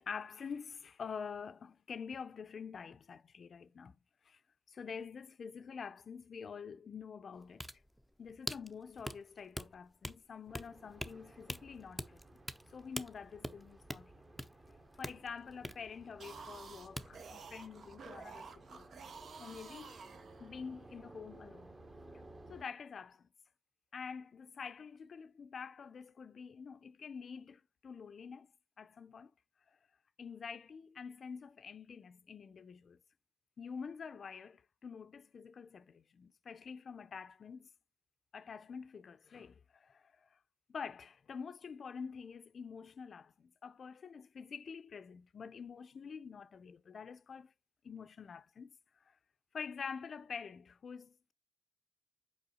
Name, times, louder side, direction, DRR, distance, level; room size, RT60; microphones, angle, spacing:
voice 1, 0.0-4.0 4.2-4.4 4.7-7.7 8.2-12.4 12.7-14.1 14.7-18.9 19.4-20.0 20.4-21.7 22.5-23.3 23.9-28.5 28.8-29.3 29.7-29.8 30.2-33.0 33.6-37.7 38.3-40.4 40.7-47.5 47.8-48.8 49.1-49.2 49.5-51.3, left 6 dB, 60° left, 0.4 m, -47 dB
sound 1, 7.3-16.7 17.0-17.1, equal, ahead, 0.5 m, -44 dB
sound 2, 10.5-22.6, right 2 dB, 25° right, 1.0 m, -58 dB
sound 3, 16.1-20.8, right 5 dB, 70° right, 0.7 m, -51 dB
5.5 x 4.4 x 4.2 m
wide cardioid pair, 110°, 0 cm